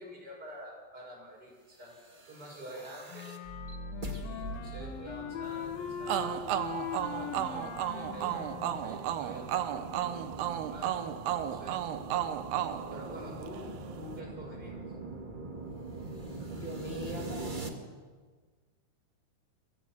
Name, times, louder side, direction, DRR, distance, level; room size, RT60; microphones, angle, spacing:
voice 1, 0.0-1.9 2.3-3.3 4.1-5.7 6.0-9.7 10.5-11.0 11.4-11.8 12.9-14.8, equal, 25° right, -2 dB, 7.1 m, -47 dB
sound 1, 1.9-17.7, right 2 dB, 70° right, 0.4 m, -43 dB
Wind instrument woodwind instrument, 3.1-9.0, left 8 dB, 70° left, 3.0 m, -41 dB
sound 2, 6.1-13.7, right 11 dB, 85° right, 3.1 m, -34 dB
voice 2, 16.5-18.1, left 1 dB, 30° left, 0 dB, 4.5 m, -42 dB
23.5 x 18.5 x 7.5 m, 1.5 s
omnidirectional pair, 4.6 m